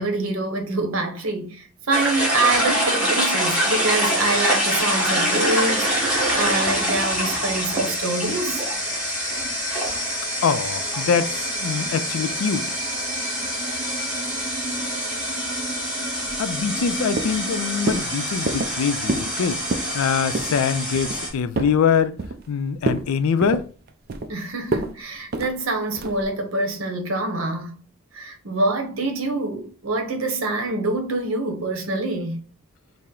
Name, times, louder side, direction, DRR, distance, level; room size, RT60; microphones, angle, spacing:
voice 1, 0.0-8.6 24.3-27.8 28.1-32.4, right 2 dB, 75° right, 0.8 m, -26 dB
sound 1, 1.9-21.3, equal, 5° right, 1.1 m, -25 dB
voice 2, 10.4-12.7 16.2-19.6 19.9-22.2 22.5-23.6, left 6 dB, 85° left, 0.4 m, -23 dB
sound 2, 16.3-16.9 17.2-17.5 17.9-18.1 18.5-18.8 19.1-19.4 19.6-19.9 20.3-20.6 21.0-21.8 22.2-22.5 22.8-23.1 23.4-24.3 24.7-24.9 25.3-25.5 26.0-26.3, right 3 dB, 45° right, 0.4 m, -27 dB
4.2 x 2.0 x 3.7 m
head